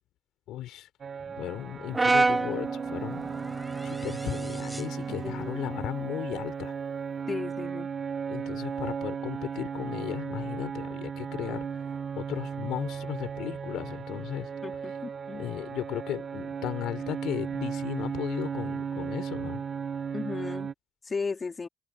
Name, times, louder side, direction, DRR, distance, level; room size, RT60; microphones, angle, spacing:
voice 1, 0.5-0.9 1.4-3.2 3.8-6.7 8.3-11.7 12.2-14.5 15.3-19.6, left 13 dB, 85° left, 3.3 m, -36 dB
sound 1, 1.0-20.7, right 6 dB, 45° right, 1.9 m, -36 dB
sound 2, 1.2-5.8, equal, ahead, 4.5 m, -47 dB
Brass instrument, 1.9-6.2, right 3 dB, 20° right, 1.9 m, -30 dB
voice 2, 5.1-5.6 7.3-7.9 14.6-15.5 20.1-20.7 21.0-21.7, left 4 dB, 30° left, 1.5 m, -35 dB
cardioid pair, 100°, 0 cm